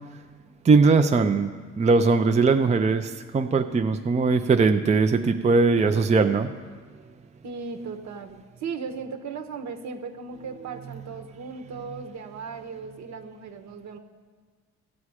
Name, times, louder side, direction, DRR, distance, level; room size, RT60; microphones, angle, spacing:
voice 1, 0.6-6.5, right 4 dB, 25° right, 7 dB, 0.5 m, -20 dB
voice 2, 7.4-14.0, right 5 dB, 65° right, 5 dB, 1.3 m, -37 dB
15.5 x 7.1 x 4.8 m, 1.5 s
cardioid pair, 90°, 30 cm